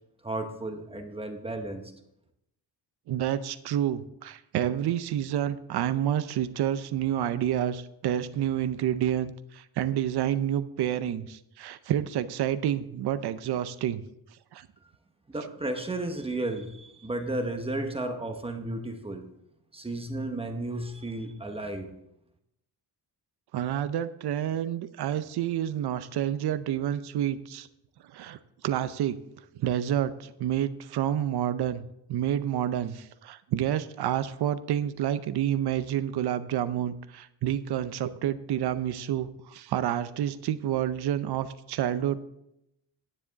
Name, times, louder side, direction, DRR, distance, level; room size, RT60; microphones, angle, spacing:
voice 1, 0.2-1.9 15.3-19.3 19.7-21.9, right 2 dB, 15° right, 4 dB, 1.0 m, -33 dB
voice 2, 3.1-14.0 14.5-14.7 15.4-15.5 23.5-27.7 28.1-28.4 28.6-29.2 29.6-42.2, right 11 dB, 70° right, 13 dB, 0.7 m, -29 dB
9.9 x 9.9 x 4.0 m, 0.80 s
wide cardioid pair, 165°, 41 cm